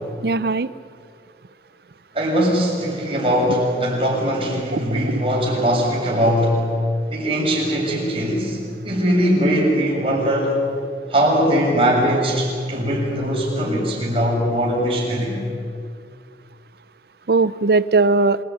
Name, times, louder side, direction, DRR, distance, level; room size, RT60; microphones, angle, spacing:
voice 1, 0.2-0.7 4.7-5.2 17.3-18.4, right 3 dB, 60° right, 16 dB, 0.6 m, -19 dB
voice 2, 2.1-6.6 7.1-8.6 8.8-10.6 11.1-15.4, equal, 30° right, -3 dB, 7.4 m, -20 dB
27.0 x 18.0 x 9.7 m, 2.3 s
head